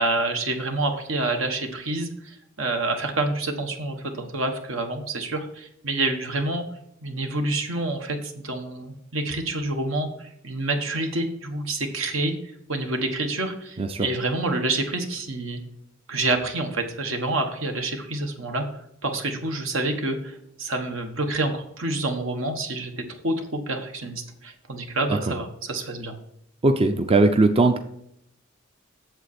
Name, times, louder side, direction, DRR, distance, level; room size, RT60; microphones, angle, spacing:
voice 1, 0.0-6.6 7.0-12.3 12.7-15.6 16.1-18.6 19.0-26.2, right 2 dB, 75° right, 5 dB, 1.3 m, -28 dB
voice 2, 26.6-27.8, right 2 dB, 30° right, 8 dB, 0.5 m, -19 dB
8.1 x 7.4 x 4.3 m, 0.74 s
head